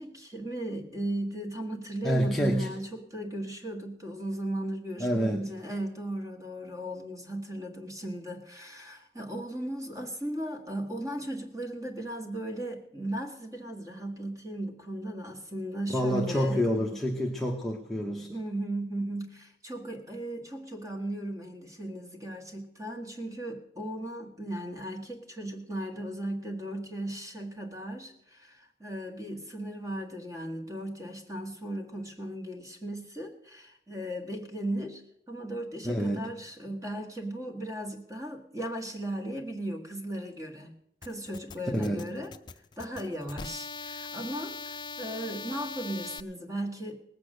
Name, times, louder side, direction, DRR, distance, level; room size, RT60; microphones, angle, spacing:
voice 1, 0.0-16.7 18.3-35.0 35.3-40.7 41.0-42.3 42.8-47.0, right 1 dB, 20° right, 3 dB, 1.6 m, -36 dB
voice 2, 2.0-2.7 5.0-5.5 15.9-18.4 35.8-36.3 41.7-42.1, equal, ahead, -1 dB, 0.9 m, -28 dB
sound 1, 41.0-46.2, left 4 dB, 25° left, 0.5 m, -41 dB
18.5 x 8.4 x 6.5 m, 0.79 s
head